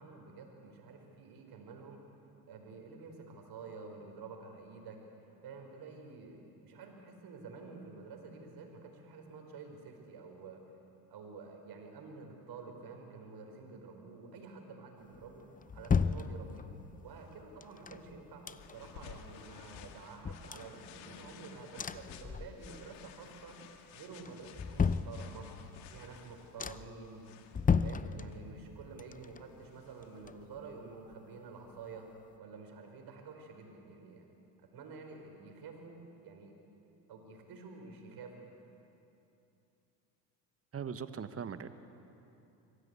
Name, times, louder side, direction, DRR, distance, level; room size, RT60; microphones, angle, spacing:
voice 1, 0.0-2.0 2.5-5.0 5.3-10.6 11.1-16.7 17.0-23.6 23.9-25.5 25.9-27.3 27.8-32.1 32.4-34.3 34.6-36.6 37.1-38.4, right 4 dB, 55° right, 3 dB, 5.1 m, -49 dB
sound 1, 15.1-16.9 17.6-19.0 19.4-19.5 19.7-21.4 21.8-23.0 23.3-23.8 24.2-25.7 26.1-26.2 26.6-27.1 27.5-28.7 29.0-30.8 31.1-31.2, left 6 dB, 20° left, 0.6 m, -35 dB
sound 2, 17.1-30.8, left 9 dB, 70° left, 1.7 m, -56 dB
voice 2, 40.7-41.7, right 7 dB, 30° right, 11 dB, 1.3 m, -40 dB
24.5 x 16.5 x 8.3 m, 2.8 s
hypercardioid pair, 70°, 47 cm